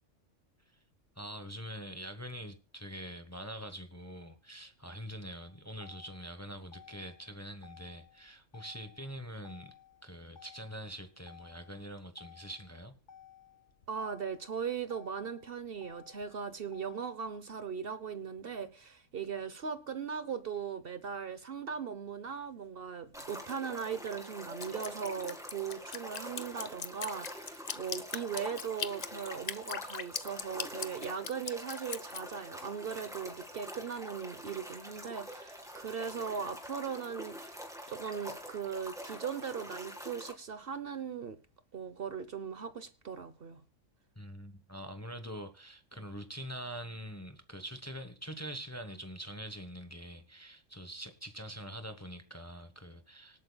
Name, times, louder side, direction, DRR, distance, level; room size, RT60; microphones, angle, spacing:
voice 1, 1.2-9.7 10.0-12.9 44.2-53.4, equal, 15° left, 1.0 m, -44 dB
Motor vehicle (road), 5.4-17.4, left 9 dB, 70° left, 1.4 m, -58 dB
voice 2, 13.9-37.6 37.9-41.4 41.7-43.6, right 6 dB, 50° right, 1.1 m, -39 dB
sound 1, 23.1-40.3, equal, ahead, 2.0 m, -46 dB
Drip, 24.6-32.2, left 7 dB, 40° left, 0.7 m, -39 dB
26.0 x 8.7 x 2.3 m
omnidirectional pair, 1.3 m